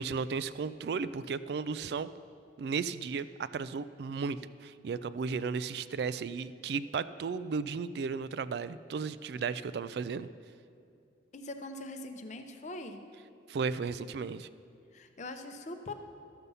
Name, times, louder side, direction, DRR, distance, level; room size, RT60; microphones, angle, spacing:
voice 1, 0.0-2.1 2.6-10.3 13.5-14.5, right 5 dB, 60° right, 15 dB, 0.3 m, -34 dB
voice 2, 11.3-13.0 14.9-15.9, left 2 dB, 40° left, 7 dB, 0.6 m, -42 dB
12.5 x 6.8 x 5.5 m, 2.4 s
head